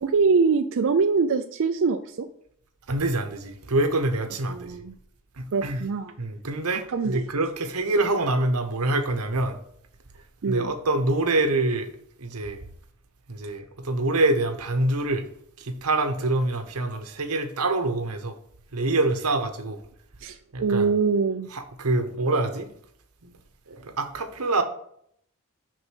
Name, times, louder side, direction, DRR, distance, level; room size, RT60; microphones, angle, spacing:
voice 1, 0.0-2.3 4.5-4.9 5.5-6.1 6.9-7.2 10.4-10.7 20.2-21.5, right 4 dB, 60° right, 0.4 m, -23 dB
voice 2, 2.9-4.8 5.4-5.8 6.2-9.6 10.4-11.9 12.2-12.6 13.3-15.2 15.6-18.4 18.7-19.8 20.5-20.9 21.5-22.7 23.2-23.3 23.7-24.6, right 2 dB, 75° right, 1.0 m, -25 dB
6.4 x 5.2 x 6.4 m
head